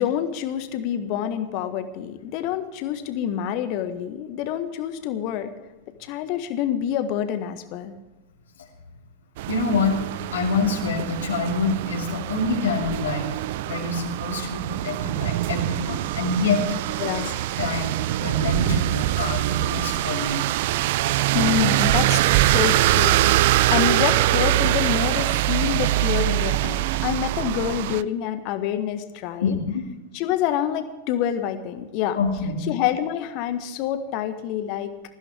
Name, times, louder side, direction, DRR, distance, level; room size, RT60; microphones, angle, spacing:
voice 1, 0.0-5.5 6.0-7.9 17.0-17.4 21.3-29.5 30.1-32.2 32.7-34.9, left 10 dB, 45° left, 10 dB, 1.6 m, -27 dB
sound 1, 9.4-28.0, right 16 dB, 50° right, 0.4 m, -23 dB
voice 2, 9.5-10.0 10.3-13.4 13.7-16.7 17.1-20.6 29.4-29.8 32.1-32.7, left 4 dB, 70° left, -1 dB, 2.7 m, -26 dB
20.0 x 15.0 x 3.5 m, 1.1 s
figure-of-eight pair, 90°, 0 cm